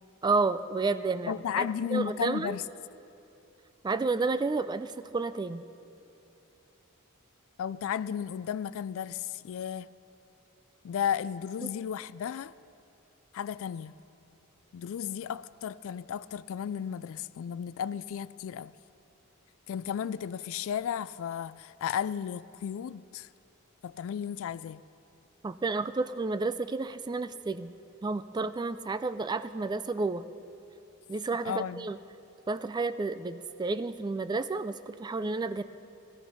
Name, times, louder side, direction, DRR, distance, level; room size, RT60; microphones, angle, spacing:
voice 1, 0.2-2.6 3.8-5.6 11.6-11.7 25.4-27.7 28.0-30.2 31.1-32.0 32.5-35.6, right 3 dB, 20° right, 0.3 m, -31 dB
voice 2, 1.3-2.7 7.6-9.9 10.8-12.5 13.3-13.9 14.7-18.7 19.7-23.3 23.8-24.8 31.4-31.9, left 8 dB, 65° left, 0.3 m, -34 dB
18.5 x 13.0 x 5.6 m
head